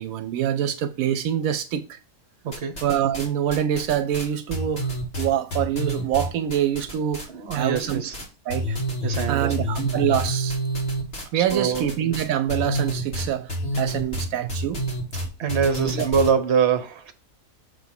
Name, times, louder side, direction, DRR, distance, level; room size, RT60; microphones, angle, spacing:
voice 1, 0.0-2.0 2.8-4.9 5.2-7.3 7.5-8.0 8.5-8.8 9.3-10.6 11.3-14.8 15.1-15.2 15.8-16.1, right 10 dB, 85° right, 1.0 m, -25 dB
voice 2, 2.4-2.8 7.3-8.2 9.0-9.7 11.3-11.9 15.4-17.1, right 6 dB, 55° right, 1.1 m, -24 dB
sound 1, 2.5-3.3 3.5-7.2 7.5-8.2 8.5-16.3, right 1 dB, 50° left, 2.3 m, -28 dB
6.7 x 3.4 x 5.8 m
omnidirectional pair, 1.4 m